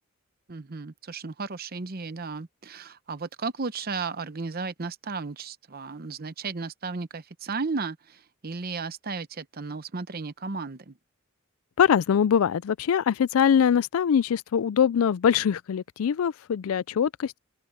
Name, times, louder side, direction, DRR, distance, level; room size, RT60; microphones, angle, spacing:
voice 1, 0.5-11.0, right 4 dB, 45° right, 0.8 m, -34 dB
voice 2, 11.8-17.4, left 8 dB, 80° left, 0.4 m, -23 dB
open air
head